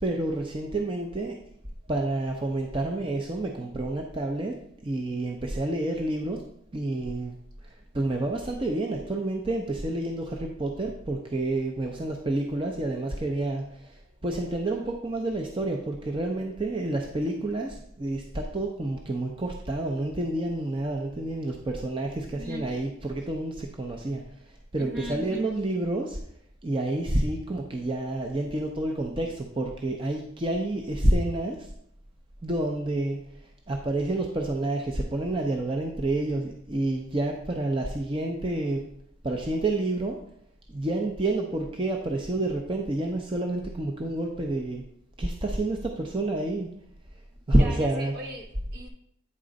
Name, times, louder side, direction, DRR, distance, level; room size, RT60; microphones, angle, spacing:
voice 1, 0.0-1.4 1.9-4.6 4.8-6.4 6.7-7.4 7.6-24.2 24.5-26.2 26.6-31.7 32.4-33.2 33.7-38.8 39.2-40.2 40.7-44.8 45.2-46.7 47.5-48.1, right 2 dB, 25° right, 1 dB, 0.6 m, -29 dB
voice 2, 22.1-22.8 24.8-25.5 47.6-48.9, equal, 55° right, 2 dB, 1.2 m, -39 dB
8.6 x 3.8 x 5.1 m, 0.71 s
head